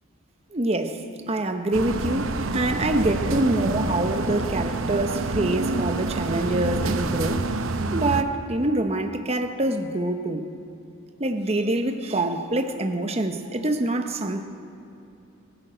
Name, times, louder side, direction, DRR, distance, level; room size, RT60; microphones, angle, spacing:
voice 1, 0.5-7.5 7.9-10.5 11.2-14.5, right 2 dB, 30° right, 6 dB, 0.8 m, -25 dB
sound 1, 1.7-8.2, right 3 dB, 75° right, 0.8 m, -27 dB
23.0 x 12.0 x 5.1 m, 2.8 s
head